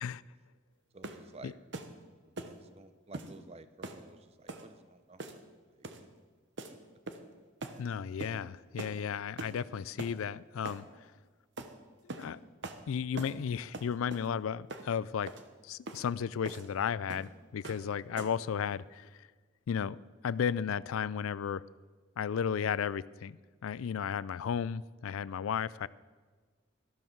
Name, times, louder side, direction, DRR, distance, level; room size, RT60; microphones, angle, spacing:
voice 1, 0.9-1.6 2.3-5.4 5.8-5.9 6.7-6.8, right 2 dB, 30° right, 12 dB, 0.6 m, -53 dB
sound 1, 1.0-1.3 1.7-1.9 2.4-2.6 3.1-3.3 3.8-4.0 4.5-4.7 5.2-5.5 5.8-6.1 6.6-6.7 7.1-7.3 7.6-7.8 8.2-8.4 8.8-9.0 9.4-9.6 10.0-10.2 10.6-10.8 11.6-11.7 12.1-12.3 12.6-12.8 13.2-13.4 13.7-14.3 14.7-14.9 15.3-15.4 15.9-16.0 16.4-16.7 17.1-17.3 17.6-17.9 18.2-18.4, right 2 dB, 55° right, 0.9 m, -42 dB
voice 2, 7.8-10.8 12.1-12.4 12.9-15.3 15.6-19.3 19.7-20.0 20.2-21.6 22.2-25.9, left 7 dB, 85° left, 20 dB, 0.4 m, -34 dB
13.0 x 12.5 x 4.6 m, 1.4 s
head